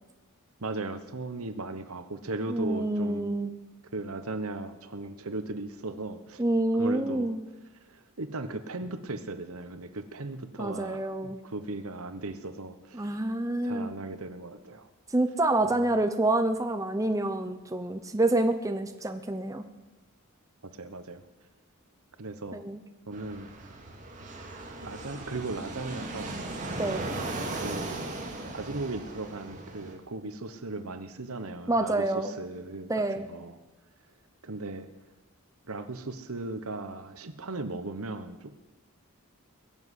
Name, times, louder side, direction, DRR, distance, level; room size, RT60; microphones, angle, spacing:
voice 1, 0.6-3.4 3.9-6.4 6.8-7.3 7.9-13.1 13.6-14.9 15.6-15.8 20.8-21.2 22.2-22.6 23.1-23.5 24.8-26.4 26.7-27.0 27.5-28.1 28.5-33.6 34.4-34.9 35.7-38.6, right 2 dB, 75° right, 10 dB, 1.2 m, -37 dB
voice 2, 2.5-3.6 6.4-7.4 10.6-11.4 12.9-13.9 15.1-19.6 22.5-22.8 26.8-27.1 31.7-32.4 32.9-33.3, right 2 dB, 15° right, 7 dB, 0.7 m, -27 dB
Fixed-wing aircraft airplane, 23.1-29.9, right 2 dB, 35° right, 2.3 m, -37 dB
22.0 x 7.4 x 8.3 m, 1.2 s
head